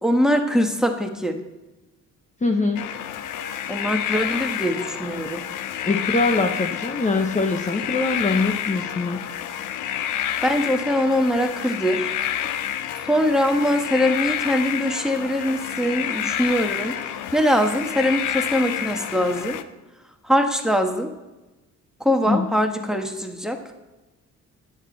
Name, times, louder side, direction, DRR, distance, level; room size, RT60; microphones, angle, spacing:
voice 1, 0.0-1.4 3.7-5.4 10.4-12.1 13.0-16.9 17.3-19.6 20.2-21.1 22.0-23.6, equal, ahead, 4 dB, 1.5 m, -22 dB
voice 2, 2.4-2.8 5.8-9.2 22.3-22.5, left 3 dB, 25° left, 4 dB, 1.1 m, -23 dB
sound 1, 2.8-19.6, left 10 dB, 85° left, 0.8 m, -29 dB
13.0 x 9.8 x 4.1 m, 1.1 s
cardioid pair, 90°, 30 cm